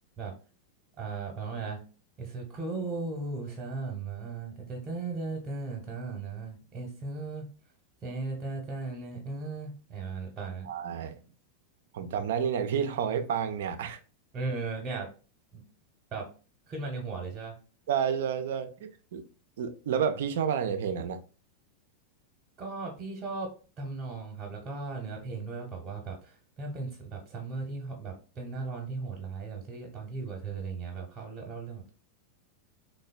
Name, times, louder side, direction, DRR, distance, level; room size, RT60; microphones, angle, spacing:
voice 1, 1.0-1.8 2.2-7.5 8.0-10.7 14.3-15.1 15.5-15.6 16.1-16.3 16.7-17.6 22.6-31.9, right 3 dB, 25° right, 0.8 m, -37 dB
voice 2, 10.6-11.2 11.9-14.0 17.9-19.2 19.6-21.2, right 7 dB, 60° right, 0.3 m, -30 dB
3.4 x 2.0 x 2.3 m
figure-of-eight pair, 90°, 0 cm